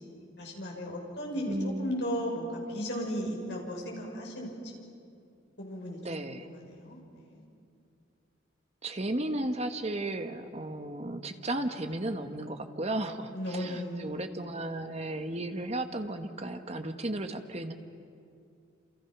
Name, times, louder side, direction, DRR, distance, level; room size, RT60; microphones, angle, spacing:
voice 1, 0.0-4.5 5.6-7.4 13.3-14.2, equal, 60° left, -1 dB, 5.6 m, -36 dB
voice 2, 1.5-1.9 6.0-6.5 8.8-17.7, right 1 dB, 35° right, 7 dB, 1.3 m, -34 dB
28.0 x 28.0 x 6.1 m, 2.4 s
head